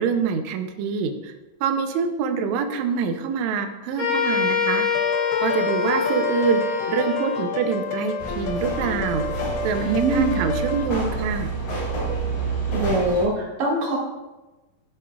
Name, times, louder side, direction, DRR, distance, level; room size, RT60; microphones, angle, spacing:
voice 1, 0.0-1.3 1.6-4.8 5.4-6.6 6.9-11.5, right 6 dB, 90° right, 6 dB, 1.5 m, -25 dB
sound 1, 4.0-7.6, left 6 dB, 45° left, 3.3 m, -24 dB
sound 2, 4.9-10.9, left 4 dB, 90° left, 2.4 m, -30 dB
sound 3, 8.2-13.2, right 3 dB, 75° left, 4.9 m, -28 dB
voice 2, 9.8-10.4 12.7-14.0, right 2 dB, 60° right, -3 dB, 3.2 m, -23 dB
13.5 x 7.2 x 2.3 m, 1.1 s
omnidirectional pair, 4.1 m